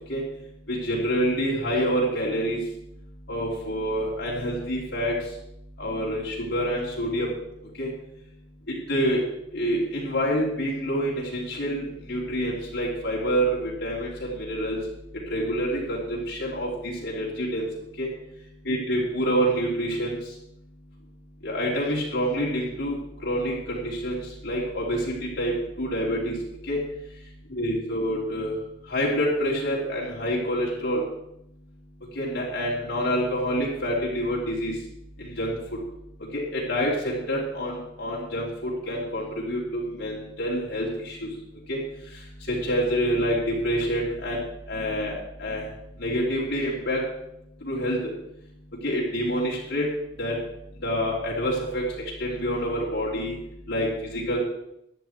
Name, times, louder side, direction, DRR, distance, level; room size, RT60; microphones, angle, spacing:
voice 1, 0.7-2.6 3.3-5.1 5.8-7.3 7.8-7.9 8.9-9.2 9.5-14.8 15.3-17.6 18.0-18.1 18.7-20.2 21.4-25.5 25.8-26.3 26.7-26.8 27.5-28.5 28.9-31.0 32.2-34.7 35.2-35.6 36.3-41.3 41.7-41.8 42.5-44.4 44.7-45.6 46.0-47.0 47.6-48.0 48.8-49.9 50.2-50.4 50.8-53.4 53.7-54.4, equal, 65° left, -5 dB, 3.4 m, -27 dB
15.0 x 11.0 x 4.5 m, 0.80 s
head